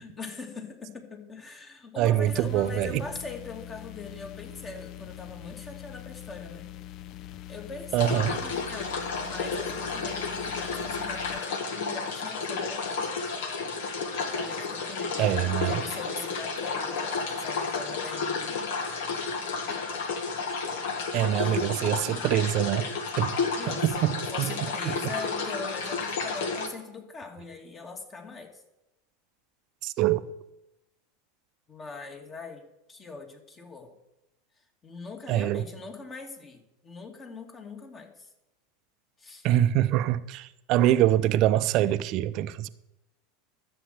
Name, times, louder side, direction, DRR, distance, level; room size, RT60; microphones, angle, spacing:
voice 1, 0.0-6.7 7.5-12.9 13.2-13.4 14.3-18.7 21.3-21.9 23.6-28.6 31.7-33.9 34.8-38.3 39.2-39.5, left 4 dB, 25° left, 2.5 m, -41 dB
voice 2, 2.0-3.0 7.9-8.3 15.2-15.8 21.1-22.9 23.2-23.4 23.7-24.5 24.9-25.0 29.8-30.3 35.3-35.6 39.4-42.7, right 12 dB, 50° right, 0.6 m, -24 dB
sound 1, 2.2-11.4, left 13 dB, 45° left, 0.5 m, -43 dB
sound 2, 8.0-26.7, left 4 dB, 65° left, 1.7 m, -32 dB
12.5 x 7.8 x 7.9 m
figure-of-eight pair, 85°, 0 cm